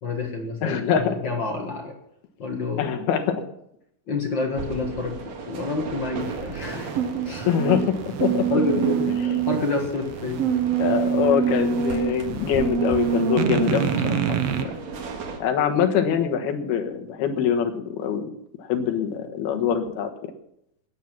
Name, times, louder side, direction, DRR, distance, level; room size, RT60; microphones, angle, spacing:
voice 1, 0.0-2.0 2.4-2.9 4.1-7.8 8.5-10.4, left 3 dB, 60° left, 2 dB, 1.2 m, -29 dB
voice 2, 0.6-1.2 2.8-3.4 7.5-8.5 9.2-9.4 10.8-14.7 15.4-20.3, left 8 dB, 80° left, 6 dB, 3.3 m, -24 dB
sound 1, 4.6-15.4, right 4 dB, 55° right, 2.7 m, -36 dB
sound 2, 6.2-14.6, right 7 dB, 80° right, 1.4 m, -25 dB
19.5 x 8.3 x 6.0 m, 0.76 s
omnidirectional pair, 4.4 m